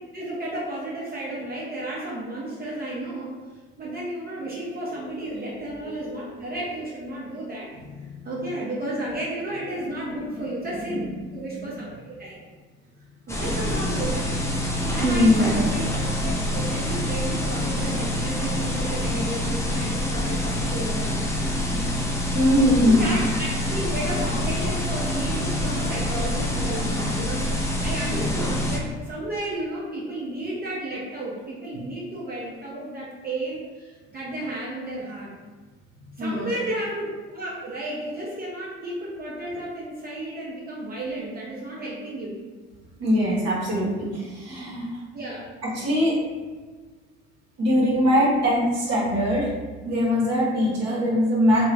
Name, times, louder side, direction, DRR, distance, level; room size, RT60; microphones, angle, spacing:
voice 1, 0.1-3.3 3.8-7.7 8.2-12.4 13.3-14.3 14.8-21.6 22.9-35.3 36.2-42.4 45.1-45.5 48.1-48.4 50.6-50.8, right 1 dB, 30° right, -6 dB, 0.7 m, -33 dB
voice 2, 5.9-6.2 10.3-10.4 10.9-11.0 11.5-11.7 15.0-15.5 22.3-23.1 36.2-36.6 43.0-45.0 45.6-46.2 47.6-49.5 49.8-51.7, equal, 55° right, -5 dB, 0.9 m, -22 dB
sound 1, 13.3-28.8, left 1 dB, 10° left, 0.5 m, -26 dB
2.3 x 2.3 x 3.2 m, 1.4 s
hypercardioid pair, 60°, 30 cm